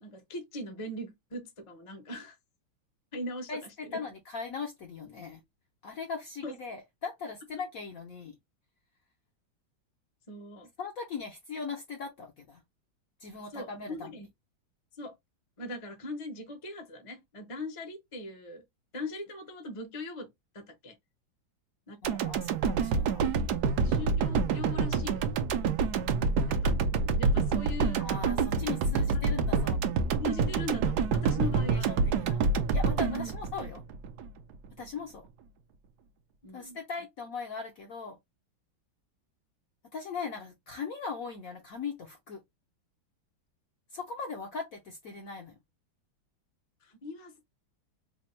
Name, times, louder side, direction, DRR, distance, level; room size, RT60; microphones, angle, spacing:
voice 1, 0.0-2.4 3.1-4.0 6.4-6.5 10.3-10.7 13.5-14.3 15.0-15.1 15.6-18.6 18.9-20.9 21.9-22.1 23.8-25.3 26.5-28.1 29.1-29.2 30.2-31.9 33.0-33.3 36.4-36.8 46.8-47.3, left 1 dB, 40° left, 0.4 m, -40 dB
voice 2, 3.5-5.4 5.8-8.4 10.8-12.6 13.2-14.1 22.0-23.3 28.0-29.8 31.4-32.4 32.7-33.8 34.8-35.3 36.5-38.2 39.9-42.4 43.9-45.6, left 5 dB, 70° left, 0.8 m, -39 dB
sound 1, 22.0-34.3 34.6-34.7, right 4 dB, 70° right, 1.0 m, -27 dB
3.4 x 2.1 x 4.2 m
omnidirectional pair, 2.2 m